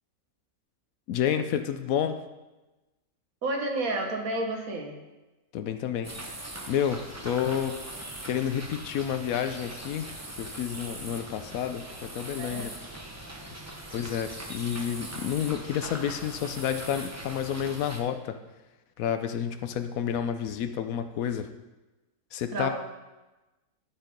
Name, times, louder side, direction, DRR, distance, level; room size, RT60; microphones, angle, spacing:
voice 1, 1.1-2.2 5.5-6.1 6.7-7.8 8.2-10.1 10.4-12.7 13.9-18.4 19.0-21.5 22.3-22.7, left 9 dB, 70° left, 9 dB, 1.0 m, -30 dB
voice 2, 3.4-5.0 12.3-12.7 22.5-22.7, right 2 dB, 70° right, 2 dB, 1.6 m, -30 dB
sound 1, 6.0-18.0, right 1 dB, 15° right, 0.6 m, -41 dB
12.0 x 4.1 x 5.1 m, 1.1 s
omnidirectional pair, 1.6 m